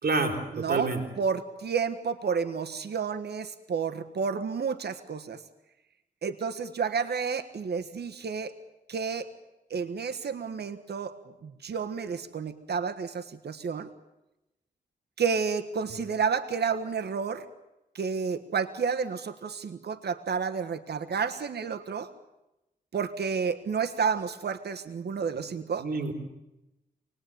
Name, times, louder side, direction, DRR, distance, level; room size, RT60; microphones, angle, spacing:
voice 1, 0.0-1.0 25.8-26.1, right 3 dB, 60° right, 4 dB, 4.6 m, -28 dB
voice 2, 0.5-5.4 6.2-8.5 8.9-9.3 9.7-11.1 11.4-13.9 15.2-17.4 17.9-22.1 22.9-25.9, right 6 dB, 80° right, 8 dB, 1.5 m, -30 dB
27.5 x 20.5 x 9.4 m, 0.95 s
wide cardioid pair, 80°, 17 cm